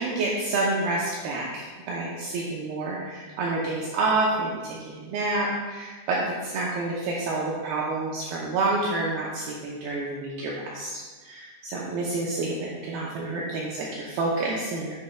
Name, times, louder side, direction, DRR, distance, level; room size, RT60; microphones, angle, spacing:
voice 1, 0.0-15.0, right 2 dB, 85° right, -4 dB, 2.3 m, -28 dB
8.9 x 6.3 x 2.3 m, 1.4 s
omnidirectional pair, 5.2 m